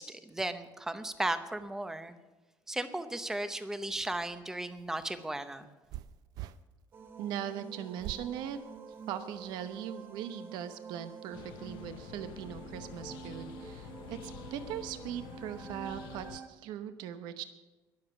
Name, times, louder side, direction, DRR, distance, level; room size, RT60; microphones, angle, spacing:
voice 1, 0.0-2.1 2.7-5.7, right 1 dB, 5° right, 10 dB, 0.7 m, -35 dB
sound 1, 4.7-6.6 8.0-8.3 8.9-9.5, right 14 dB, 60° right, 0.5 m, -44 dB
sound 2, 6.9-16.5, right 6 dB, 30° right, 1.1 m, -48 dB
voice 2, 7.2-8.6 9.1-17.4, right 10 dB, 75° right, 10 dB, 0.9 m, -40 dB
sound 3, 11.3-16.4, left 12 dB, 80° left, 0.7 m, -48 dB
21.5 x 7.4 x 6.0 m, 1.2 s
cardioid pair, 180°, 8 cm